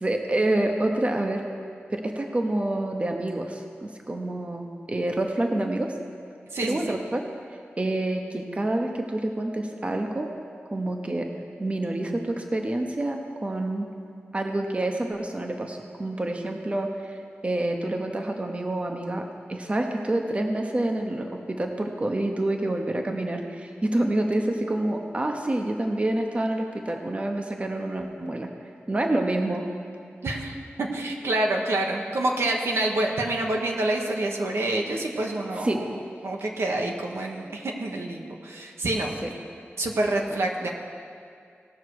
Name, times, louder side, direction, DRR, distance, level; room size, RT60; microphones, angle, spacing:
voice 1, 0.0-1.4 1.9-5.9 6.6-7.3 7.8-10.3 10.7-11.3 11.6-13.9 14.3-17.2 17.4-28.5 28.9-29.6 35.6-35.8 39.2-39.3, right 1 dB, 30° right, 3 dB, 0.9 m, -27 dB
voice 2, 6.5-7.0 30.2-39.1 39.8-40.7, right 2 dB, 80° right, 0 dB, 1.2 m, -27 dB
18.5 x 6.5 x 4.7 m, 2.3 s
wide cardioid pair, 90°, 4 cm